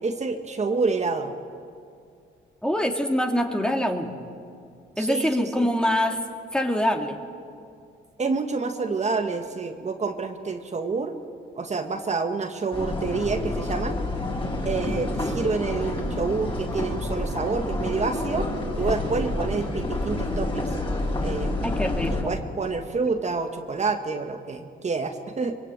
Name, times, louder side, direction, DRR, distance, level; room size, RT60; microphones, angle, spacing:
voice 1, 0.0-1.3 5.0-5.7 8.2-11.2 11.6-14.0 14.6-18.5 18.8-20.7 21.2-21.6 22.1-25.6, right 4 dB, 35° right, 4 dB, 1.9 m, -28 dB
voice 2, 2.6-4.1 5.0-6.2 6.5-7.2 14.7-15.2 21.6-22.4, equal, 5° left, 4 dB, 2.6 m, -25 dB
sound 1, 12.7-22.2, left 2 dB, 25° left, 7.1 m, -28 dB
24.0 x 23.0 x 9.2 m, 2.4 s
cardioid pair, 90°, 20 cm